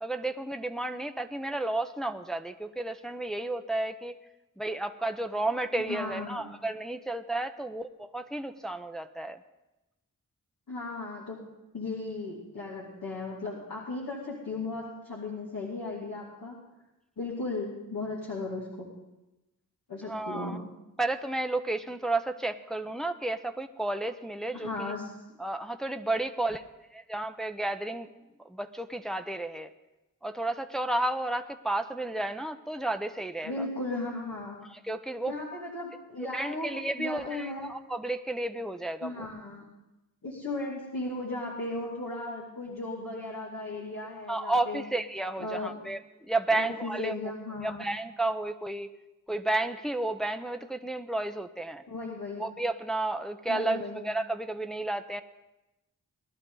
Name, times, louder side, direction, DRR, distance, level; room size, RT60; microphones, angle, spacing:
voice 1, 0.0-4.1 4.6-9.4 20.0-20.6 21.0-24.7 25.4-26.6 26.9-28.1 28.4-29.7 30.2-33.7 34.7-35.3 36.3-39.3 44.3-46.0 46.3-47.2 47.6-48.9 49.3-51.8 52.4-55.2, right 2 dB, ahead, 6 dB, 0.8 m, -32 dB
voice 2, 5.9-6.5 10.7-11.4 11.7-16.6 17.2-18.9 19.9-20.6 24.5-25.1 33.4-34.6 35.3-36.7 37.0-37.7 39.0-39.7 40.2-44.8 45.4-45.7 46.5-47.8 51.9-52.4 53.5-54.0, left 2 dB, 80° left, -6 dB, 2.7 m, -36 dB
19.5 x 11.5 x 4.0 m, 0.99 s
cardioid pair, 45°, 33 cm